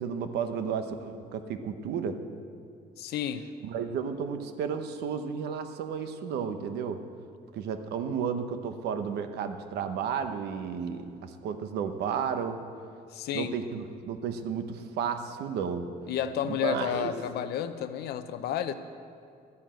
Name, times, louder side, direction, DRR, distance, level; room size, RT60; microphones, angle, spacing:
voice 1, 0.0-2.2 3.6-7.0 7.5-12.6 13.3-15.9 16.5-17.1, right 7 dB, 75° right, 8 dB, 1.0 m, -32 dB
voice 2, 3.0-3.5 13.1-13.5 16.1-18.7, left 9 dB, 70° left, 10 dB, 0.7 m, -31 dB
12.0 x 9.8 x 7.7 m, 2.4 s
cardioid pair, 110°, 17 cm